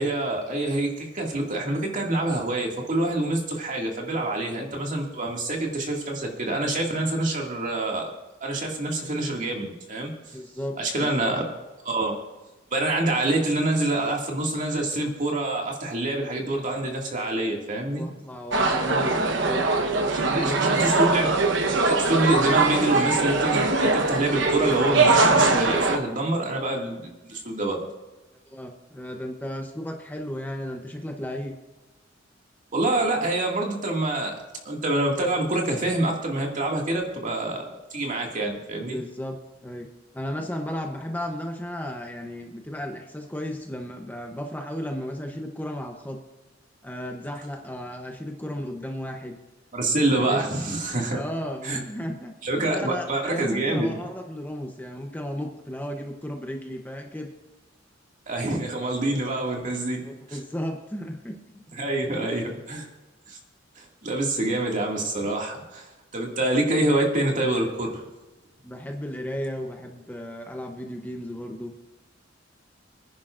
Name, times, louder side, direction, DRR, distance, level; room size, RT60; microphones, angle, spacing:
voice 1, 0.0-8.1 8.4-10.1 10.8-11.5 11.8-12.1 12.7-18.0 20.1-21.3 21.7-27.9 32.7-34.3 34.6-39.0 49.7-51.2 51.6-51.8 52.4-54.0 58.3-60.0 60.3-60.4 61.7-62.9 63.3-63.4 63.8-65.9 66.1-68.0, right 2 dB, 40° right, 0 dB, 2.2 m, -26 dB
voice 2, 10.3-11.4 17.9-19.6 20.2-20.9 28.5-31.6 38.9-39.9 40.1-46.2 46.8-49.4 50.3-50.5 51.1-57.3 60.0-61.6 62.0-62.3 68.6-71.7, equal, 10° left, 3 dB, 0.8 m, -34 dB
sound 1, 18.5-26.0, right 3 dB, 70° right, 1.1 m, -22 dB
25.0 x 10.5 x 2.5 m, 1.1 s
head